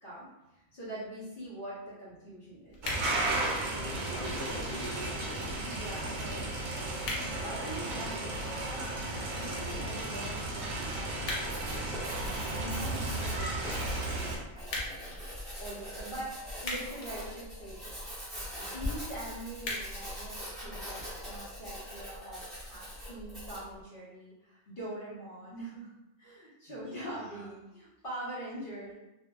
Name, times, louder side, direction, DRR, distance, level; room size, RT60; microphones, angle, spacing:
voice 1, 0.0-3.0 5.6-6.7 7.4-11.4 12.1-15.3 15.6-18.3 18.6-25.9 26.2-28.9, right 1 dB, 45° left, -9 dB, 0.8 m, -44 dB
sound 1, 2.7-21.7, left 1 dB, 85° left, 1.1 m, -45 dB
sound 2, 2.8-14.4, right 2 dB, 85° right, 1.0 m, -34 dB
voice 2, 3.7-5.8 20.9-21.0 26.7-27.5, left 1 dB, 45° right, -11 dB, 0.7 m, -45 dB
Writing, 11.3-23.7, left 1 dB, ahead, 0.7 m, -42 dB
2.6 x 2.2 x 2.2 m, 0.96 s
omnidirectional pair, 1.4 m